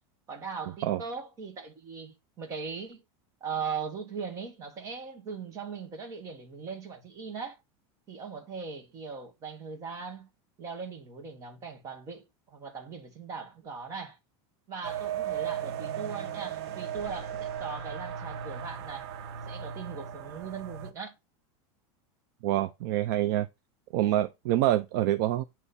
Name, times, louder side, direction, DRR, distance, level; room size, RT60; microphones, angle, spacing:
voice 1, 0.3-3.0 3.4-7.6 8.1-10.3 10.6-14.2 14.7-19.1 19.5-21.1, right 5 dB, 20° right, 1.2 m, -39 dB
sound 1, 14.8-20.9, right 9 dB, 70° right, 0.9 m, -36 dB
voice 2, 22.4-23.5 23.9-25.4, right 13 dB, 45° right, 0.4 m, -26 dB
8.1 x 3.1 x 4.0 m
supercardioid pair, 180°, 14 cm